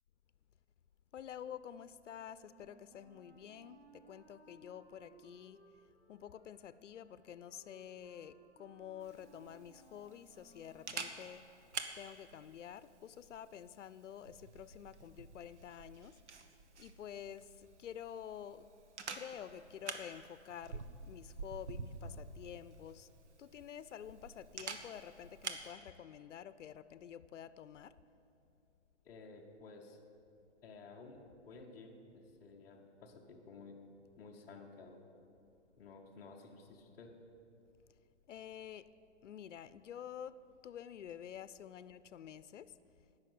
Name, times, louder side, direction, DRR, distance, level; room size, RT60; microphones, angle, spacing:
voice 1, 1.1-5.6 6.1-11.4 12.0-16.2 16.8-18.7 19.1-23.1 23.4-27.9 38.3-38.9 39.2-40.4 40.6-42.7, left 9 dB, 85° left, 15 dB, 0.6 m, -49 dB
Wind instrument woodwind instrument, 2.3-11.2, right 3 dB, 45° right, 2.9 m, -64 dB
Camera, 9.0-25.7, right 4 dB, 70° right, 1.4 m, -49 dB
voice 2, 29.0-30.0 30.6-33.8 34.2-35.0 35.8-37.2, left 3 dB, 5° left, -6 dB, 0.7 m, -54 dB
18.0 x 6.4 x 7.7 m, 2.7 s
hypercardioid pair, 170°, 36 cm